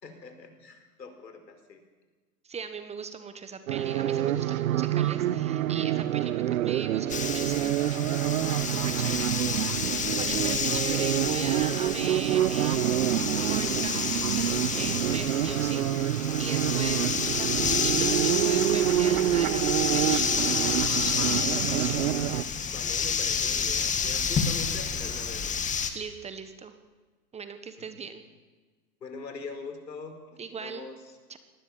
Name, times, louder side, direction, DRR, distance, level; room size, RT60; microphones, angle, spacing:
voice 1, 0.0-1.8 8.5-9.2 22.7-25.6 27.8-28.0 29.0-31.2, left 4 dB, 80° left, 6 dB, 4.9 m, -43 dB
voice 2, 2.4-7.7 8.7-9.3 9.9-22.1 25.9-26.7 27.3-28.2 30.4-30.9 31.3-31.4, right 5 dB, 15° right, 10 dB, 1.2 m, -40 dB
sound 1, 3.7-22.4, right 12 dB, 55° right, 1.1 m, -27 dB
sound 2, 7.1-25.9, left 6 dB, 15° left, 1.9 m, -30 dB
26.5 x 19.0 x 7.3 m, 1.4 s
hypercardioid pair, 120°, 49 cm